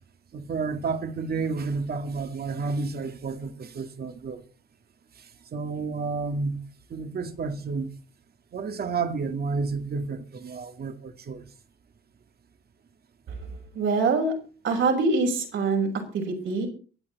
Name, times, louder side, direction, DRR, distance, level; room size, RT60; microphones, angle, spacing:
voice 1, 0.3-4.4 5.5-6.6 6.9-7.9 8.5-11.4, right 4 dB, 50° right, 2.1 m, -30 dB
voice 2, 13.7-14.3 14.6-16.7, right 3 dB, 70° right, 6.1 m, -24 dB
23.0 x 8.8 x 4.2 m
cardioid pair, 90°, 20 cm